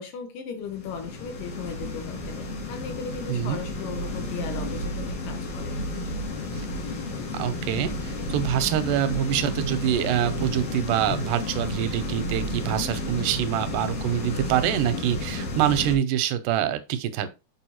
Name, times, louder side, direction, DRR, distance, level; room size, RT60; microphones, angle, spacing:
voice 1, 0.0-5.8, left 6 dB, 85° left, 2.8 m, -37 dB
sound 1, 0.6-15.9, left 2 dB, 55° left, 1.9 m, -32 dB
voice 2, 3.3-3.6 6.6-6.7 7.3-17.3, right 10 dB, 85° right, 2.2 m, -25 dB
6.9 x 5.1 x 2.9 m
omnidirectional pair, 3.8 m